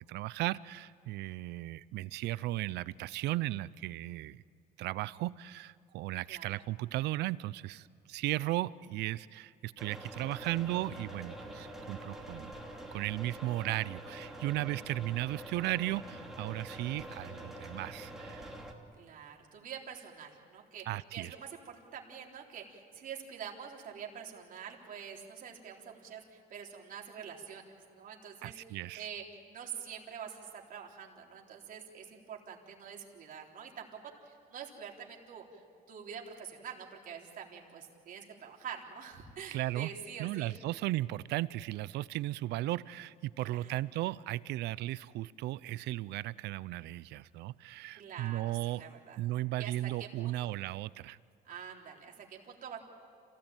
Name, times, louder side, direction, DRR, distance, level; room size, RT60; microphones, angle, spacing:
voice 1, 0.0-4.4 4.8-12.5 12.9-18.5 20.9-21.3 28.4-29.1 39.5-39.9 40.2-48.8 49.2-51.2, right 16 dB, 80° right, 19 dB, 0.6 m, -36 dB
voice 2, 6.3-6.6 18.9-20.9 21.1-27.7 27.9-35.6 35.9-40.6 43.4-43.8 48.0-49.2 49.6-50.5 51.4-52.8, right 7 dB, 55° right, 0 dB, 3.7 m, -46 dB
sound 1, 9.8-18.7, right 1 dB, ahead, 2.8 m, -46 dB
27.0 x 17.5 x 9.1 m, 2.6 s
cardioid pair, 110°, 17 cm